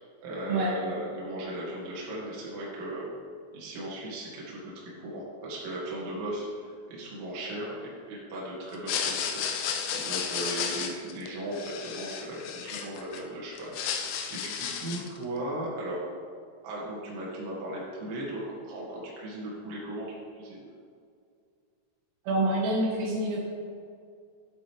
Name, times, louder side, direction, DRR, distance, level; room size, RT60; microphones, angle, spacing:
voice 1, 0.0-3.1 3.5-14.0 14.3-16.1 16.6-20.1 20.3-20.6, right 1 dB, 70° right, -5 dB, 4.3 m, -37 dB
sound 1, 8.7-13.2 13.6-15.2, left 7 dB, 80° left, 2.9 m, -33 dB
voice 2, 22.3-23.4, right 1 dB, 90° right, -4 dB, 4.3 m, -27 dB
12.0 x 7.8 x 3.3 m, 2.3 s
omnidirectional pair, 5.7 m